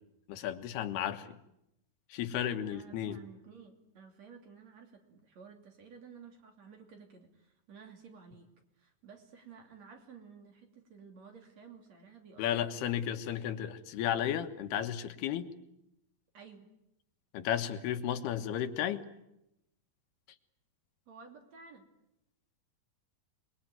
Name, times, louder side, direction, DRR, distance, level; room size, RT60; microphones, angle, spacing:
voice 1, 0.3-1.3 2.1-3.2 12.4-15.5 17.3-19.0, left 10 dB, 85° left, 8 dB, 3.4 m, -33 dB
voice 2, 2.7-8.5 8.8-12.9 16.3-16.7 21.1-21.9, right 6 dB, 45° right, 4 dB, 3.8 m, -54 dB
27.0 x 21.5 x 9.3 m, 0.83 s
omnidirectional pair, 4.5 m